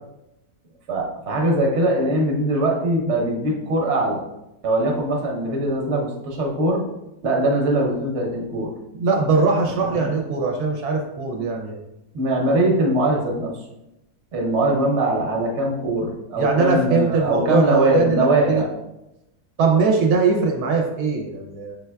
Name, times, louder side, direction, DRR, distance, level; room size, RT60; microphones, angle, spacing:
voice 1, 0.9-4.2 4.6-6.8 7.2-8.7 9.9-10.1 12.1-13.5 14.3-18.7, right 1 dB, 55° right, 0 dB, 1.1 m, -21 dB
voice 2, 9.0-11.8 16.4-18.6 19.6-21.8, right 4 dB, 80° right, 1 dB, 1.1 m, -21 dB
5.6 x 3.3 x 2.2 m, 0.90 s
omnidirectional pair, 1.6 m